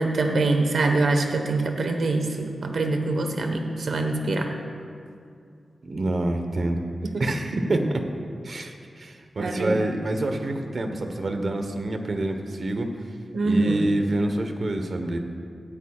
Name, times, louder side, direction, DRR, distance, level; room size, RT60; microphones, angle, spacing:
voice 1, 0.0-2.3 2.6-4.5 7.1-7.2 9.4-9.9 13.3-13.9, right 2 dB, 80° right, 4 dB, 1.2 m, -24 dB
voice 2, 5.8-6.8 7.2-8.0 8.4-12.9 13.4-15.2, right 2 dB, 55° right, 5 dB, 1.1 m, -27 dB
17.0 x 12.0 x 2.4 m, 2.4 s
wide cardioid pair, 75°, 0 cm